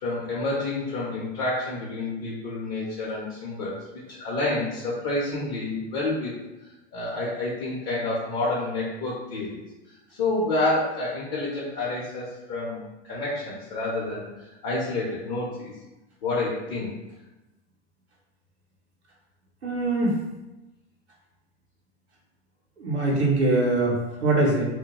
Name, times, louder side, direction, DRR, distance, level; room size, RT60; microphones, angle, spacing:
voice 1, 0.0-3.8 4.1-6.3 6.9-9.6 10.1-15.7 16.2-16.9, left 2 dB, 45° left, -5 dB, 0.6 m, -29 dB
voice 2, 19.6-20.2 22.8-24.6, right 2 dB, 85° right, -4 dB, 0.6 m, -22 dB
2.2 x 2.1 x 2.8 m, 1.0 s
figure-of-eight pair, 85°, 32 cm